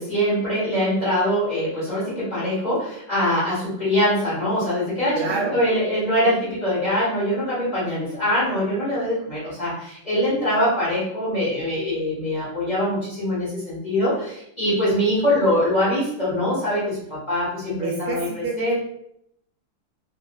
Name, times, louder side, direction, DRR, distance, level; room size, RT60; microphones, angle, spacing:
voice 1, 0.0-17.0 17.3-18.7, equal, 30° left, -9 dB, 1.1 m, -23 dB
voice 2, 5.1-5.6 17.8-18.7, right 3 dB, 75° right, -1 dB, 1.1 m, -27 dB
3.0 x 2.6 x 2.2 m, 0.76 s
omnidirectional pair, 1.8 m